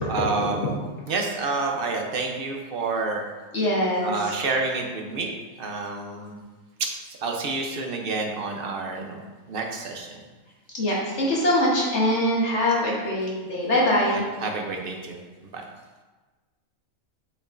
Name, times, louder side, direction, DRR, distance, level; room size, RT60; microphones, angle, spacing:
voice 1, 0.1-0.7 1.1-3.2 4.0-5.3 5.6-6.4 6.8-6.9 7.2-9.2 9.5-10.2 14.1-15.2 15.5-15.6, right 3 dB, 50° right, 2 dB, 0.9 m, -29 dB
voice 2, 3.5-4.1 10.7-14.3, left 1 dB, 55° left, -4 dB, 1.4 m, -23 dB
7.3 x 5.1 x 2.6 m, 1.3 s
omnidirectional pair, 1.4 m